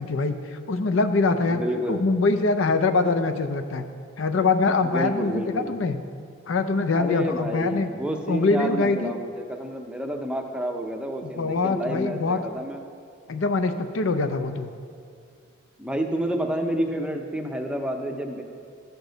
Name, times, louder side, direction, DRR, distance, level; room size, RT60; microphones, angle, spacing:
voice 1, 0.0-1.6 1.9-3.9 4.2-6.0 6.5-7.9 8.3-9.2 11.2-12.4 13.3-14.7, left 3 dB, 70° left, 8 dB, 0.5 m, -23 dB
voice 2, 1.5-2.1 4.8-5.8 6.9-12.9 15.8-18.4, right 1 dB, 5° right, 3 dB, 0.5 m, -29 dB
13.0 x 6.9 x 3.9 m, 2.3 s
head